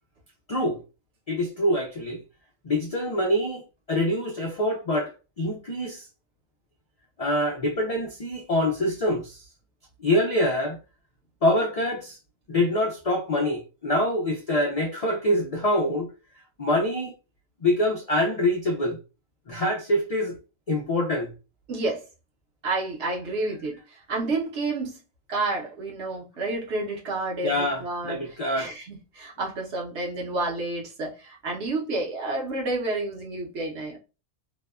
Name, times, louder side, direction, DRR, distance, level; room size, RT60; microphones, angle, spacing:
voice 1, 1.3-2.2 2.6-3.6 3.9-6.1 7.2-9.4 10.0-10.8 11.4-12.2 12.5-16.1 16.6-17.1 17.6-19.0 19.5-20.4 20.7-21.3 27.4-28.7, left 1 dB, 75° left, 0.3 m, -25 dB
voice 2, 21.7-22.0 22.6-25.0 25.3-34.0, right 2 dB, 65° right, 1.0 m, -30 dB
2.7 x 2.1 x 2.3 m
omnidirectional pair, 1.3 m